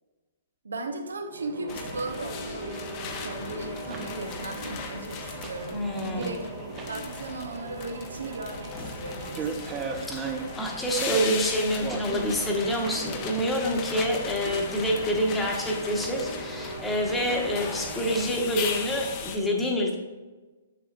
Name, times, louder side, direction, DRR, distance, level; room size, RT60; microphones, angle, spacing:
voice 1, 0.6-6.5 6.9-9.7 14.4-14.6, right 2 dB, 75° right, 5 dB, 0.9 m, -37 dB
sound 1, 1.2-18.7, right 2 dB, 50° right, 1.3 m, -41 dB
sound 2, 1.7-19.4, left 5 dB, 30° left, 0.7 m, -38 dB
sound 3, 3.3-18.3, right 5 dB, 20° right, 0.6 m, -41 dB
voice 2, 5.7-6.4 10.1-20.0, equal, 10° left, 0 dB, 1.1 m, -27 dB
7.3 x 6.5 x 2.4 m, 1.2 s
figure-of-eight pair, 120°, 0 cm